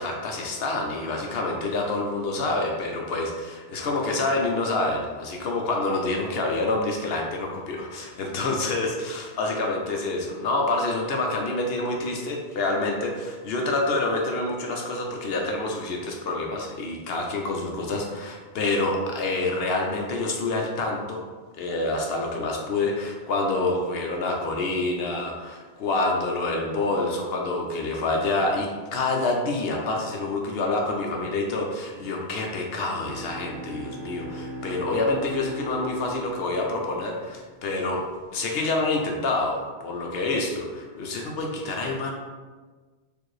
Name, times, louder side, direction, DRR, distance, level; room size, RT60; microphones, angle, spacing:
voice 1, 0.0-21.2 21.6-38.1 38.3-42.1, left 2 dB, 65° left, 1 dB, 0.8 m, -27 dB
Bowed string instrument, 32.8-37.9, right 1 dB, 75° right, 0.8 m, -38 dB
4.5 x 2.5 x 3.1 m, 1.4 s
omnidirectional pair, 1.2 m